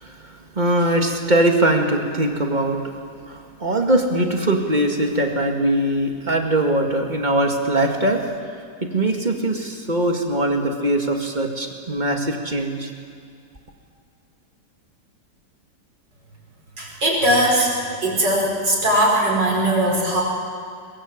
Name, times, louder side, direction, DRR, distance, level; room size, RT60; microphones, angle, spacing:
voice 1, 0.0-3.0 3.2-8.2 8.8-12.9, right 1 dB, 25° right, 3 dB, 2.2 m, -21 dB
voice 2, 16.8-17.7 18.0-20.2, right 1 dB, 75° right, -2 dB, 5.6 m, -19 dB
22.5 x 22.0 x 8.0 m, 2.2 s
omnidirectional pair, 1.9 m